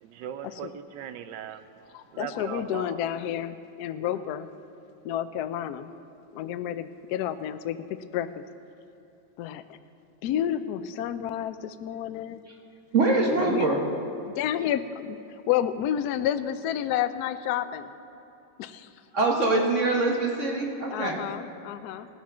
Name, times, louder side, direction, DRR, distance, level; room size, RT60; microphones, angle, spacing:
voice 1, 0.0-1.6 2.1-3.0, right 9 dB, 75° right, 11 dB, 1.2 m, -38 dB
voice 2, 1.9-4.5 5.0-5.9 6.3-7.9 8.1-8.4 9.4-9.6 10.2-12.4 13.3-13.6 14.4-15.2 15.5-17.9 18.6-18.9 20.9-22.1, left 10 dB, 70° left, 12 dB, 0.9 m, -30 dB
voice 3, 12.9-13.8 19.1-21.2, right 2 dB, 45° right, 0 dB, 1.4 m, -24 dB
17.5 x 7.2 x 6.1 m, 2.9 s
omnidirectional pair, 2.1 m